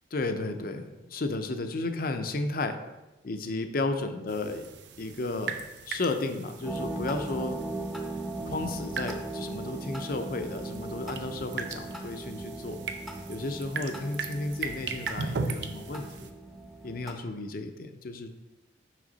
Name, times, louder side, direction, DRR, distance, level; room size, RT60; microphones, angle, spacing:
voice 1, 0.1-2.8 3.2-4.6 5.0-7.6 8.4-12.8 13.3-16.3 16.8-18.3, left 2 dB, 50° left, 8 dB, 0.6 m, -33 dB
sound 1, 4.3-16.3, right 4 dB, 70° right, 0.6 m, -39 dB
sound 2, 6.6-17.1, right 2 dB, ahead, 0.7 m, -38 dB
6.2 x 5.7 x 3.9 m, 1.0 s
head